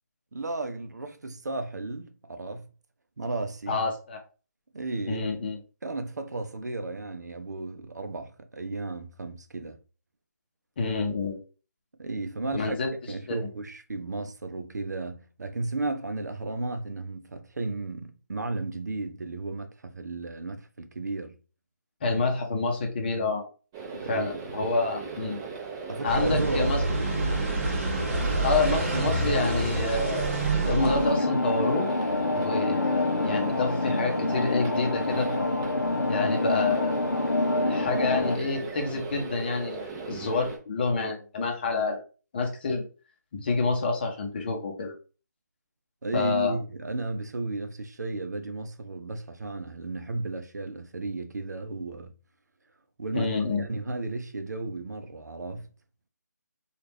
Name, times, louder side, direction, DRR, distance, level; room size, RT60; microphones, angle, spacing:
voice 1, 0.3-2.7 3.2-3.8 4.7-5.3 5.8-9.8 12.0-12.8 13.1-21.3 24.0-24.4 25.9-26.8 46.0-52.1 53.0-53.3 53.6-55.7, right 2 dB, 70° right, 0.6 m, -34 dB
voice 2, 3.7-4.2 5.1-5.6 10.8-11.4 12.5-12.9 13.3-13.4 22.0-23.4 24.0-25.4 26.0-26.8 28.4-30.3 30.6-31.9 32.3-35.5 36.1-37.0 37.7-42.0 42.3-42.8 43.3-44.9 46.1-46.6 53.1-53.7, left 3 dB, 35° left, 0.7 m, -28 dB
sound 1, 23.7-40.6, right 5 dB, 20° right, 0.6 m, -38 dB
sound 2, 26.0-31.1, right 2 dB, 45° right, 0.9 m, -27 dB
sound 3, 30.8-38.4, left 2 dB, 90° left, 0.7 m, -27 dB
3.2 x 2.4 x 3.1 m
figure-of-eight pair, 150°, 10 cm